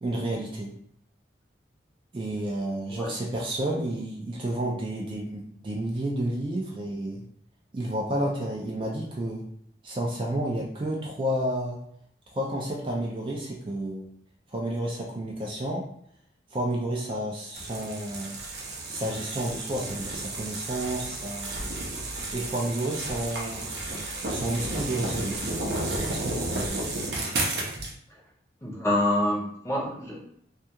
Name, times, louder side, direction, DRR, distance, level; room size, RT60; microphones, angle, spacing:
voice 1, 0.0-0.7 2.1-7.2 7.7-9.4 9.8-11.8 12.3-14.1 14.5-15.8 16.5-18.4 18.9-21.5 22.3-23.7 24.3-25.4 26.1-26.7, right 1 dB, 30° right, -2 dB, 0.3 m, -31 dB
sound 1, 17.5-27.9, right 2 dB, 65° right, 0.6 m, -32 dB
voice 2, 28.6-30.2, left 1 dB, 15° left, -3 dB, 0.6 m, -26 dB
2.3 x 2.2 x 2.8 m, 0.68 s
head